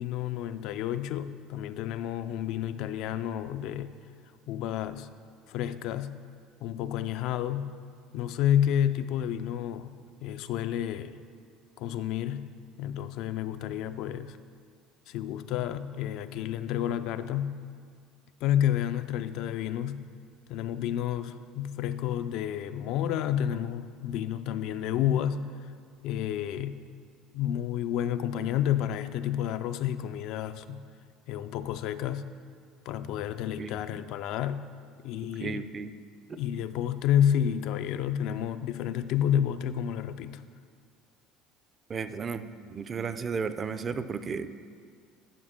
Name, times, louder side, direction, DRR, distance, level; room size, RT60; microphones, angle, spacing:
voice 1, 0.0-3.9 4.5-5.1 5.5-6.2 6.6-7.8 8.1-11.2 11.8-12.5 12.8-14.4 15.1-17.6 18.4-20.1 20.5-25.5 26.0-26.8 27.3-30.8 31.3-32.3 32.9-34.6 35.0-35.6 36.4-40.4, left 10 dB, 65° left, 11 dB, 0.3 m, -30 dB
voice 2, 35.4-35.9 36.3-36.4 41.9-44.5, right 5 dB, 30° right, 11 dB, 0.4 m, -34 dB
10.0 x 6.1 x 3.7 m, 2.1 s
cardioid pair, 120°, 0 cm